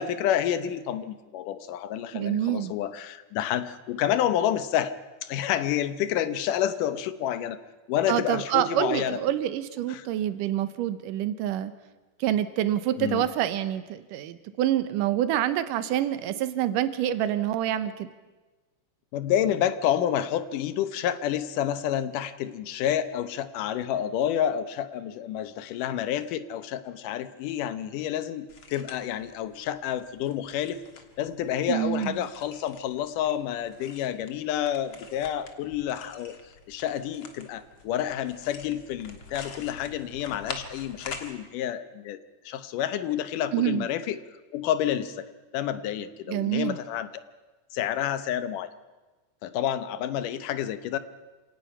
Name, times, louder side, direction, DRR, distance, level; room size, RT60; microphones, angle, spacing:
voice 1, 0.0-4.9 5.2-7.6 7.9-9.2 9.9-10.1 13.0-13.3 19.1-30.8 31.2-36.3 36.7-42.2 42.5-44.2 44.5-47.1 47.7-48.7 49.4-51.0, left 10 dB, 80° left, 12 dB, 2.5 m, -29 dB
voice 2, 2.1-2.7 8.1-11.7 12.2-18.1 31.7-32.1 43.5-43.9 46.3-46.8, right 12 dB, 90° right, 12 dB, 2.5 m, -27 dB
sound 1, 28.5-41.3, left 5 dB, 45° left, 2.1 m, -46 dB
28.0 x 17.5 x 5.6 m, 1.2 s
omnidirectional pair, 3.7 m